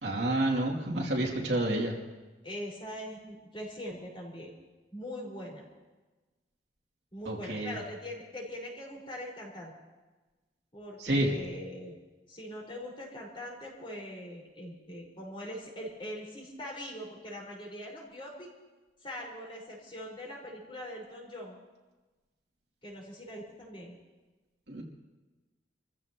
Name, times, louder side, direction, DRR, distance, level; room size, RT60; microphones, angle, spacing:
voice 1, 0.0-1.9 7.2-7.7 11.0-11.3 24.7-24.8, right 1 dB, 70° right, -2 dB, 3.0 m, -29 dB
voice 2, 2.4-4.5 4.9-5.6 7.1-9.7 10.7-12.0 12.3-18.5 19.0-21.6 22.8-24.0, equal, 30° left, -3 dB, 5.3 m, -42 dB
28.5 x 15.0 x 3.1 m, 1.2 s
head